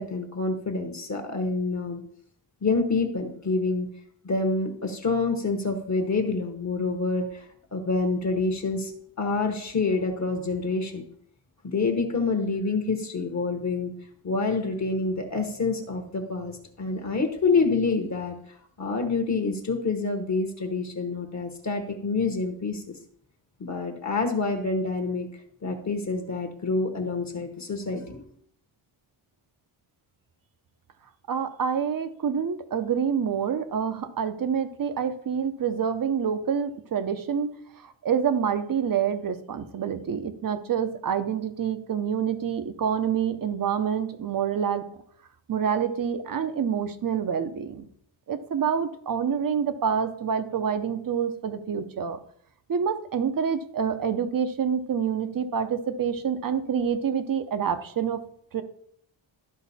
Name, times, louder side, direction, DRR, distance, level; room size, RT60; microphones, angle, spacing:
voice 1, 0.0-2.0 2.6-3.9 4.2-7.4 7.7-8.9 9.2-11.0 11.6-13.9 14.2-18.3 18.8-22.8 23.6-25.3 25.6-28.3, left 3 dB, 35° left, 4 dB, 1.0 m, -27 dB
voice 2, 31.3-37.5 37.8-44.8 45.5-47.8 48.3-52.2 52.7-58.2 58.5-58.6, right 7 dB, 45° right, 11 dB, 0.7 m, -27 dB
12.0 x 5.1 x 4.2 m, 0.66 s
wide cardioid pair, 150°, 47 cm